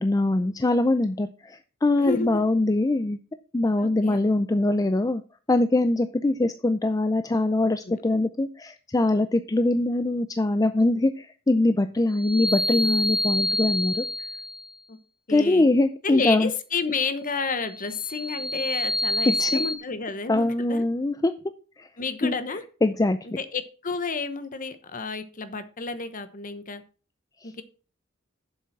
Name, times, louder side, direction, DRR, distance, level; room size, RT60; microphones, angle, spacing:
voice 1, 0.0-3.2 3.5-5.2 5.5-14.0 15.3-16.5 19.2-19.6 20.3-21.3 21.8-21.9 22.2-22.4 22.8-23.2 27.4-27.5, left 2 dB, 15° left, 10 dB, 0.4 m, -23 dB
voice 2, 2.0-2.3 3.8-4.2 7.9-8.0 14.9-15.0 15.3-15.7 16.0-20.9 22.0-22.6 23.4-26.8 27.4-27.6, left 4 dB, 40° left, 11 dB, 1.1 m, -31 dB
sound 1, 12.1-14.7 17.6-19.8, left 1 dB, ahead, 1.1 m, -27 dB
7.2 x 7.2 x 5.9 m, 0.38 s
head